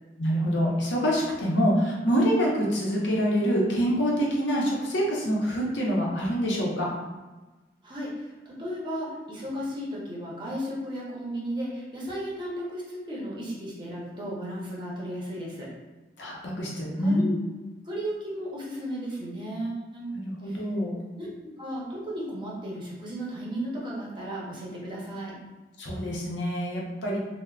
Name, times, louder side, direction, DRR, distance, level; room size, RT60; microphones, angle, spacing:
voice 1, 0.2-6.9 16.2-17.3 20.1-21.0 25.8-27.2, equal, 80° left, -3 dB, 0.7 m, -26 dB
voice 2, 7.8-15.7 17.0-17.3 17.8-20.2 20.4-20.6 21.2-21.3 21.6-25.3, equal, 25° right, -5 dB, 0.7 m, -34 dB
3.4 x 2.1 x 2.3 m, 1.2 s
head